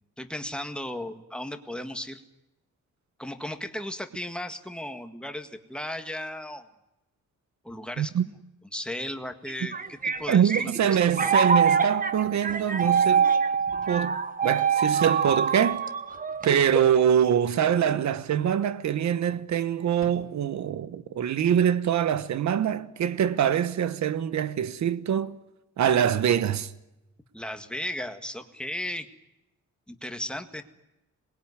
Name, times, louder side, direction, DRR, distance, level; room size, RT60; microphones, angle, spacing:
voice 1, 0.2-2.2 3.2-6.7 7.6-8.3 8.7-11.0 27.3-29.1 29.9-30.6, left 1 dB, 5° left, 1.8 m, -35 dB
voice 2, 8.0-8.3 10.3-13.3 13.9-15.8 16.4-25.4 25.8-26.7, right 9 dB, 70° right, 1.2 m, -24 dB
sound 1, 9.5-17.0, right 6 dB, 30° right, 1.3 m, -25 dB
sound 2, 20.0-22.0, left 6 dB, 50° left, 2.4 m, -51 dB
26.5 x 21.0 x 9.7 m
wide cardioid pair, 145°, 30 cm